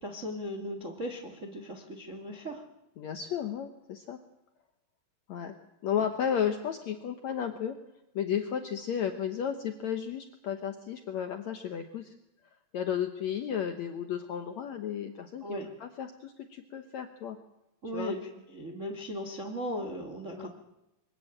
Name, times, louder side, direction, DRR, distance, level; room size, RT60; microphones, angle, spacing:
voice 1, 0.0-2.6 15.4-15.7 17.8-18.2 18.5-20.5, equal, 45° right, 4 dB, 0.9 m, -37 dB
voice 2, 3.0-4.2 5.3-5.5 5.8-7.7 8.1-12.1 12.7-15.4 15.8-17.4 17.9-18.1 20.4-20.5, left 8 dB, 70° left, 7 dB, 1.7 m, -33 dB
23.0 x 14.0 x 8.9 m, 0.93 s
omnidirectional pair, 4.5 m